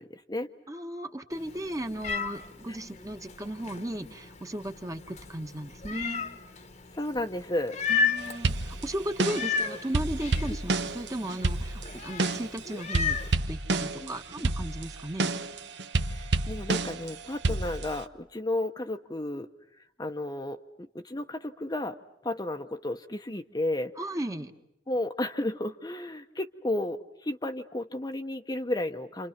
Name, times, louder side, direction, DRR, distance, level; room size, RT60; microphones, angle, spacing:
voice 1, 0.0-0.5 2.7-2.8 6.9-7.8 9.2-9.3 14.0-14.2 16.1-19.5 20.0-22.0 22.2-23.9 24.9-29.3, left 1 dB, 20° left, 5 dB, 0.9 m, -33 dB
voice 2, 0.7-6.2 7.9-13.2 13.5-15.3 24.0-24.5, right 1 dB, 20° right, 6 dB, 1.3 m, -36 dB
Meow, 1.3-13.3, left 5 dB, 40° left, 1.3 m, -35 dB
sound 1, 8.4-9.6 9.9-12.6 12.9-14.1 14.4-17.1 17.4-18.0, right 3 dB, 70° right, 1.0 m, -29 dB
29.0 x 28.5 x 5.9 m, 0.78 s
head